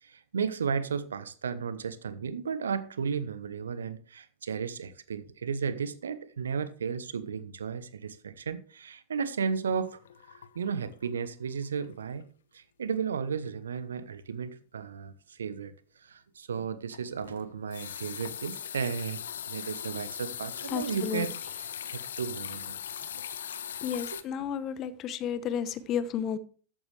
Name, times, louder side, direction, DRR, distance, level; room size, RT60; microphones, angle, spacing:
voice 1, 0.0-10.0 10.3-12.2 12.5-15.7 16.0-19.2 19.5-22.7 24.1-24.2, right 6 dB, 70° right, 0.9 m, -34 dB
sound 1, 9.6-11.3 11.5-11.9 12.2-12.3 16.9-24.2, left 9 dB, 65° left, 0.8 m, -40 dB
voice 2, 20.7-21.3 23.8-26.4, left 8 dB, 35° left, 0.9 m, -32 dB
13.5 x 9.2 x 3.3 m
figure-of-eight pair, 90°, 0 cm